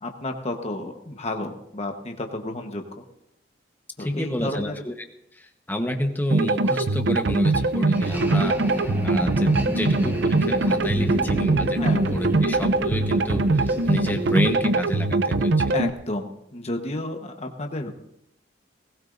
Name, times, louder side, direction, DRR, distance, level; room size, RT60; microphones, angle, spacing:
voice 1, 0.0-3.0 4.0-4.8 11.8-12.1 15.7-17.9, left 1 dB, 35° left, 5 dB, 1.1 m, -31 dB
voice 2, 4.0-4.9 5.4-11.8 12.1-15.8, left 1 dB, 10° left, 4 dB, 1.1 m, -30 dB
sound 1, 6.3-15.9, right 2 dB, 65° right, 0.6 m, -22 dB
sound 2, 7.5-14.7, equal, 10° right, 1.2 m, -31 dB
19.0 x 17.0 x 2.6 m, 0.81 s
head